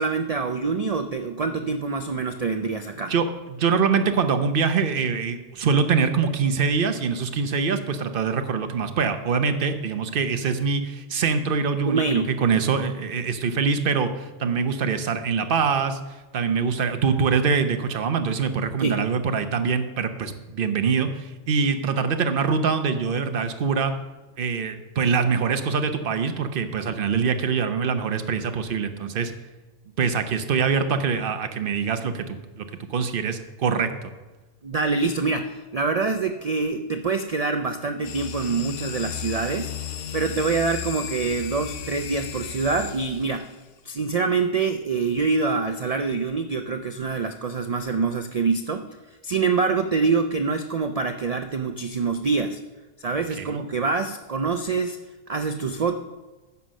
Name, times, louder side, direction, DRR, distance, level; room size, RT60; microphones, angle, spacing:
voice 1, 0.0-3.1 11.9-12.3 18.8-19.0 34.6-39.7 40.1-43.5 43.8-48.9 49.2-52.6 53.0-55.0 55.3-56.0, right 4 dB, 80° right, 8 dB, 0.3 m, -25 dB
voice 2, 3.1-16.0 16.3-23.9 24.4-29.3 30.0-34.1 53.4-53.6, right 5 dB, 50° right, 8 dB, 0.9 m, -24 dB
sound 1, 38.0-43.5, left 9 dB, 70° left, 1.0 m, -35 dB
9.7 x 5.8 x 6.3 m, 1.2 s
omnidirectional pair, 1.3 m